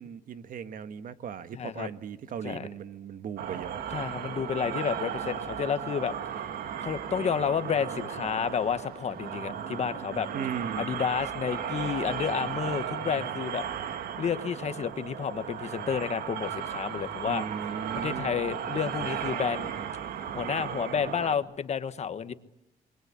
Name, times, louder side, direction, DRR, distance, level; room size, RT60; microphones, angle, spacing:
voice 1, 0.0-3.9 10.3-10.9 17.3-18.3, right 7 dB, 65° right, 11 dB, 1.4 m, -37 dB
voice 2, 1.5-1.9 2.4-2.7 3.9-6.4 6.8-10.3 10.8-13.6 14.2-17.4 18.0-19.7 20.3-22.3, left 7 dB, 45° left, 11 dB, 1.3 m, -30 dB
sound 1, 3.4-21.4, right 8 dB, 85° right, 1.9 m, -35 dB
27.0 x 23.0 x 8.3 m, 0.81 s
cardioid pair, 145°, 16 cm